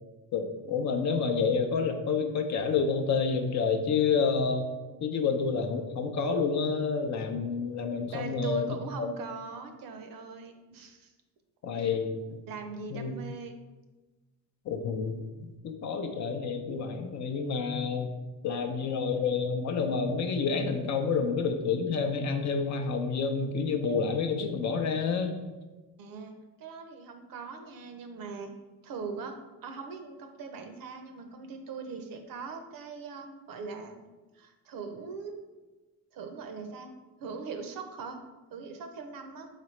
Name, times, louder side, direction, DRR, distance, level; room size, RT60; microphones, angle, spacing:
voice 1, 0.3-4.7 5.0-9.1 11.6-12.4 12.9-13.1 14.7-15.2 15.6-18.1 18.4-25.3, left 5 dB, 45° left, 5 dB, 0.6 m, -29 dB
voice 2, 8.1-11.1 11.7-11.9 12.5-13.6 26.0-28.5 28.8-29.3 29.6-34.0 34.3-35.3 36.1-36.9 37.2-38.2 38.5-39.5, right 5 dB, 60° right, 6 dB, 0.7 m, -41 dB
4.1 x 3.9 x 3.1 m, 1.2 s
cardioid pair, 100°, 38 cm